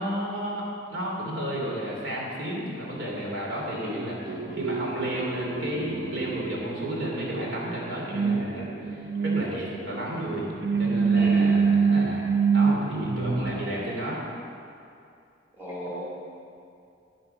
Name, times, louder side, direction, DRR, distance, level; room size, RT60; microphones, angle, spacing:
voice 1, 0.0-10.5 10.8-12.2 12.5-14.2, equal, 75° right, -3 dB, 3.4 m, -32 dB
voice 2, 3.7-4.0 11.1-11.5 15.6-16.1, equal, 10° right, -8 dB, 2.6 m, -35 dB
sound 1, 4.3-13.7, right 5 dB, 55° right, 0.8 m, -26 dB
11.5 x 10.5 x 5.9 m, 2.5 s
head